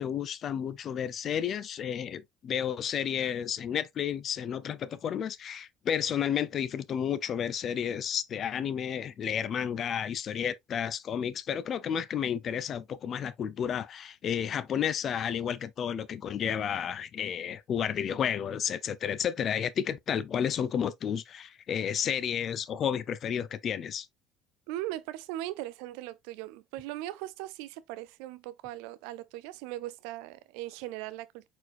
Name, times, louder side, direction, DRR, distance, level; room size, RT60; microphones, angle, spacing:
voice 1, 0.0-24.1, left 8 dB, 45° left, 0.6 m, -31 dB
voice 2, 24.7-31.5, right 15 dB, 80° right, 0.3 m, -39 dB
4.4 x 4.4 x 2.5 m
supercardioid pair, 95°, 0 cm